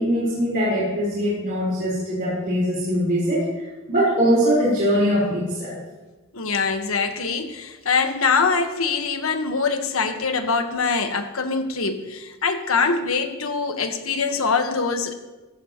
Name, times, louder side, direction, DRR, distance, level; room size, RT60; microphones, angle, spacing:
voice 1, 0.0-5.8, equal, 45° right, -7 dB, 4.4 m, -22 dB
voice 2, 6.3-15.1, left 4 dB, 80° left, 6 dB, 1.4 m, -23 dB
16.5 x 15.0 x 3.1 m, 1.2 s
head